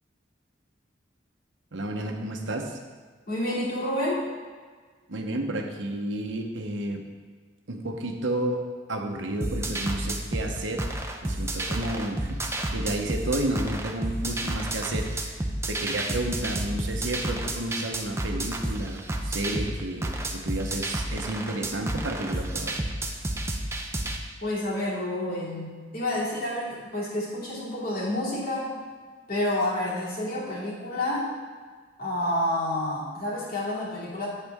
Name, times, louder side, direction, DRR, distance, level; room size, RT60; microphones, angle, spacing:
voice 1, 1.7-2.8 5.1-7.0 7.7-10.8 11.2-12.4 12.7-22.7, right 1 dB, 90° right, 3 dB, 1.0 m, -31 dB
voice 2, 3.3-4.2 24.4-28.7 29.3-31.3 32.0-34.3, left 1 dB, 55° left, -7 dB, 2.8 m, -29 dB
sound 1, 9.4-24.2, right 1 dB, 15° right, 0.6 m, -30 dB
8.5 x 8.3 x 3.6 m, 1.5 s
head